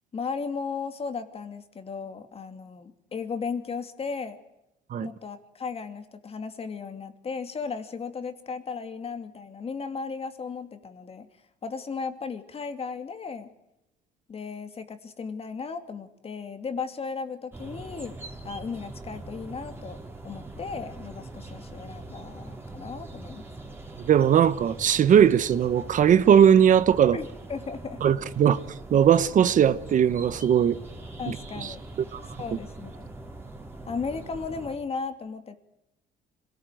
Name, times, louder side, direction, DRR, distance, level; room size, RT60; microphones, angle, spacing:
voice 1, 0.1-4.4 5.0-11.3 11.6-13.5 14.3-18.1 18.4-20.0 20.2-23.5 27.1-28.0 31.2-31.8 32.4-33.0 33.9-35.6, left 5 dB, 35° left, 2.7 m, -35 dB
sound 1, 17.5-34.8, right 2 dB, 15° right, 4.5 m, -42 dB
voice 2, 24.0-27.2 28.0-28.6 28.9-30.8 31.3-31.4 31.6-31.7 32.1-32.2, right 9 dB, 50° right, 1.0 m, -19 dB
26.0 x 18.5 x 9.2 m
cardioid pair, 110°, 17 cm